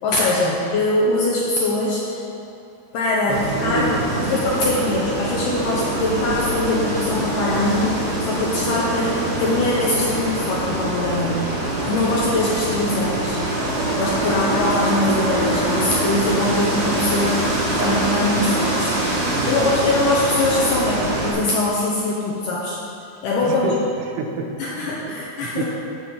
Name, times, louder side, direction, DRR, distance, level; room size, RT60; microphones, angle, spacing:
voice 1, 0.0-2.0 2.9-4.0 4.2-11.4 11.8-13.4 14.0-17.4 17.8-18.9 19.5-22.8 23.2-23.7 24.6-25.7, left 2 dB, 80° left, -4 dB, 1.9 m, -22 dB
sound 1, 3.3-21.3, right 1 dB, 40° right, 2.9 m, -24 dB
voice 2, 3.3-4.2 17.8-18.2 19.3-19.7 20.2-20.3 23.4-25.7, right 3 dB, 80° right, 2 dB, 2.9 m, -29 dB
9.0 x 5.3 x 7.1 m, 2.7 s
omnidirectional pair, 4.8 m